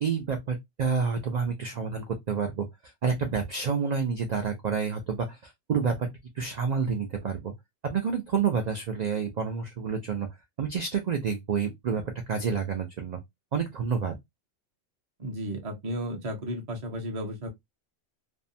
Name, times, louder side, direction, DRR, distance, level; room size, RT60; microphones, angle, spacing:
voice 1, 0.0-6.1 6.4-7.5 7.8-10.3 10.6-13.2 13.5-14.2, right 6 dB, 90° right, 0.3 m, -29 dB
voice 2, 15.2-17.5, equal, 40° right, 0.6 m, -34 dB
2.6 x 2.1 x 2.5 m
omnidirectional pair, 1.3 m